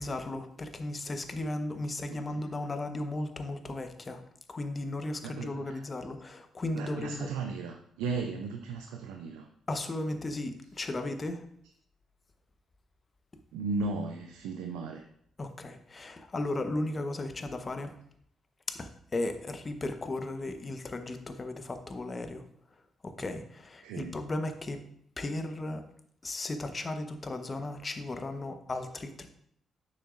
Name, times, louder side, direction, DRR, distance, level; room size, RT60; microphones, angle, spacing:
voice 1, 0.0-4.2 4.5-7.3 9.7-11.5 15.4-17.9 18.7-22.4 23.0-24.8 25.2-25.9 26.2-29.3, left 2 dB, 35° left, 7 dB, 1.0 m, -35 dB
voice 2, 2.1-2.4 5.2-5.8 6.7-9.5 13.5-15.1 23.8-24.1, right 4 dB, 80° right, 5 dB, 0.5 m, -36 dB
9.3 x 6.4 x 2.5 m, 0.69 s
hypercardioid pair, 45°, 0 cm